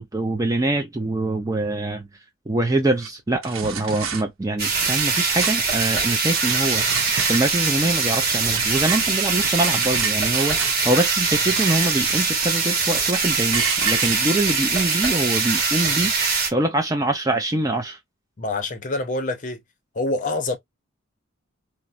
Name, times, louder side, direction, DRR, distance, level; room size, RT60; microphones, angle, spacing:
voice 1, 0.0-2.1 2.5-18.0, right 2 dB, 15° right, 0.4 m, -24 dB
sound 1, 3.0-3.1 3.4-4.2 4.6-5.7 6.2-7.7 8.0-10.9 11.2-11.9 12.2-13.2 13.5-15.1, right 6 dB, 85° right, 0.8 m, -31 dB
sound 2, 4.6-16.5, right 4 dB, 50° right, 1.7 m, -22 dB
voice 2, 18.4-19.6 19.9-20.6, left 2 dB, 40° left, 0.6 m, -26 dB
4.2 x 2.0 x 2.4 m
head